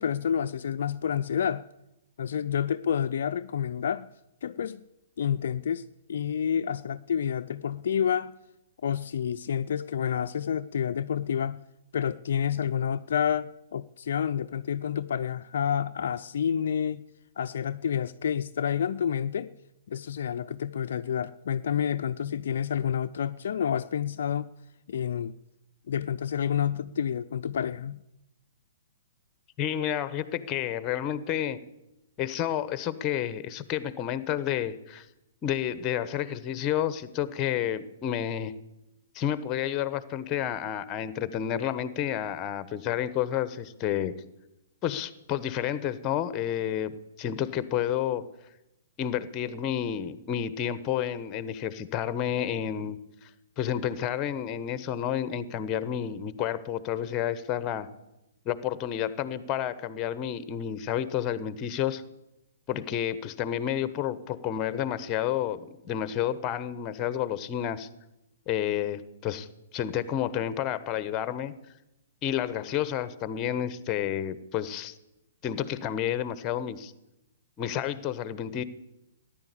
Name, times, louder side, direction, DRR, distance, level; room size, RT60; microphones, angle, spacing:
voice 1, 0.0-1.6 2.2-4.1 4.4-4.8 5.2-5.8 6.1-8.3 8.8-11.6 11.9-17.0 17.4-19.5 19.9-24.5 24.9-25.3 25.9-28.0, left 8 dB, 65° left, 10 dB, 0.5 m, -29 dB
voice 2, 29.6-31.6 32.2-35.1 35.4-38.5 39.1-44.1 44.8-48.2 49.0-53.0 53.2-53.3 53.6-57.9 58.4-62.0 62.7-67.9 68.5-71.5 72.2-75.0 75.4-76.9 77.6-78.6, left 10 dB, 30° left, 14 dB, 1.1 m, -30 dB
14.0 x 10.5 x 8.4 m, 0.92 s
hypercardioid pair, 130°, 0 cm